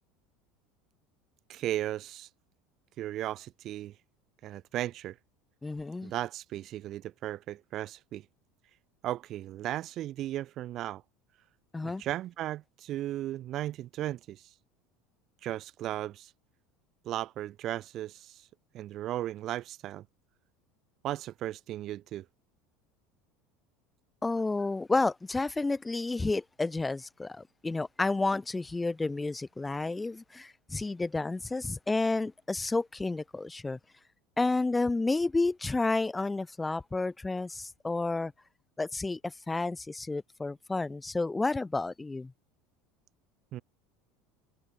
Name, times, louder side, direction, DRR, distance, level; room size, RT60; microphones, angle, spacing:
voice 1, 1.5-2.3 3.0-4.0 4.4-5.2 6.0-8.2 9.0-11.0 11.8-14.5 15.4-16.3 17.0-18.5 18.7-20.0 21.0-22.2 43.5-43.6, right 13 dB, 40° right, 1.6 m, -36 dB
voice 2, 5.6-6.1 11.7-12.0 24.2-33.8 34.4-38.3 38.8-42.3, left 3 dB, 10° left, 3.7 m, -31 dB
cardioid pair, 150°, 0 cm